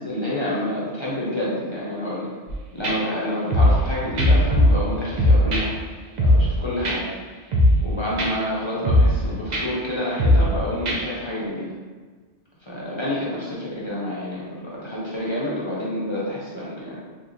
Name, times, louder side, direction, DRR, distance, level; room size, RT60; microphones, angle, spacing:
voice 1, 0.1-2.3 2.7-5.7 6.2-7.0 7.8-11.7 12.7-17.0, left 1 dB, 35° left, -7 dB, 0.5 m, -28 dB
sound 1, 2.5-2.6 2.8-3.0 3.5-3.9 4.2-4.9 5.2-5.6 6.2-6.6 6.8-7.0 7.5-7.9 8.2-8.3 8.9-9.2 9.5-9.6 10.2-10.6 10.9-11.0, left 1 dB, 50° right, 0.5 m, -17 dB
3.5 x 2.9 x 2.5 m, 1.4 s
omnidirectional pair, 1.2 m